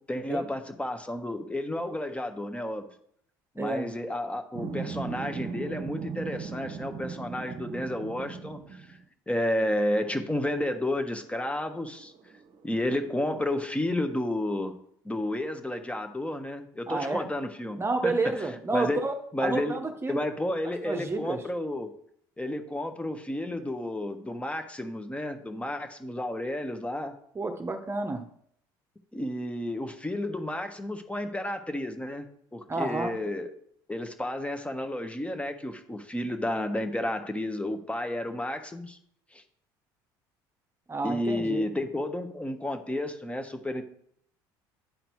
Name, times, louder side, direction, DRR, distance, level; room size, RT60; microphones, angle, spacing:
voice 1, 0.1-2.9 3.5-9.0 9.3-12.1 12.6-14.8 15.0-18.4 18.7-19.0 19.3-19.8 20.1-21.9 22.4-27.1 29.1-33.5 33.9-39.0 39.3-39.4 41.0-43.8, left 1 dB, 10° left, 7 dB, 1.2 m, -31 dB
voice 2, 3.6-3.9 16.9-17.3 17.8-19.1 19.4-20.2 20.8-21.4 27.3-28.2 32.7-33.1 40.9-41.6, right 3 dB, 25° right, 6 dB, 1.0 m, -30 dB
sound 1, 4.5-9.0 10.3-10.4 10.8-12.9, right 6 dB, 55° right, 0.9 m, -38 dB
10.5 x 3.9 x 4.6 m, 0.66 s
hypercardioid pair, 75°, 11 cm